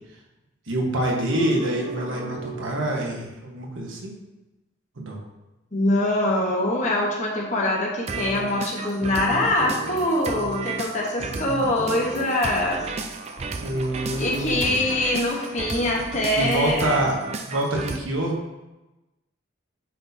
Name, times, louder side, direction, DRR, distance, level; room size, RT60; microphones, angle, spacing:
voice 1, 0.7-4.1 5.0-5.2 13.6-14.8 16.4-17.2 17.5-18.4, right 1 dB, 80° right, -1 dB, 1.3 m, -26 dB
sound 1, 1.3-3.0 8.1-18.0, right 3 dB, 30° right, 0.4 m, -33 dB
voice 2, 5.7-12.8 14.2-16.8, left 1 dB, 35° left, -2 dB, 1.1 m, -23 dB
8.6 x 4.2 x 2.8 m, 1.0 s
head